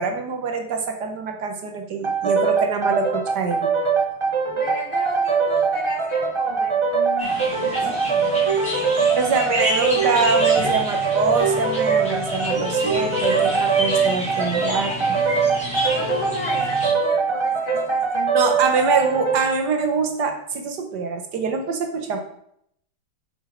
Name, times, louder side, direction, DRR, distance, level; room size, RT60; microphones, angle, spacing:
voice 1, 0.0-3.7 7.8-7.9 9.2-14.9 18.3-22.2, right 4 dB, 60° right, 5 dB, 1.5 m, -24 dB
sound 1, 2.0-19.5, right 5 dB, 25° right, 0.7 m, -22 dB
voice 2, 4.5-9.3 10.6-10.8 14.5-15.5 15.8-18.5, left 3 dB, 85° left, 1 dB, 2.5 m, -34 dB
sound 2, 7.2-16.9, left 1 dB, 5° left, 4.2 m, -30 dB
8.0 x 6.6 x 5.1 m, 0.72 s
omnidirectional pair, 2.1 m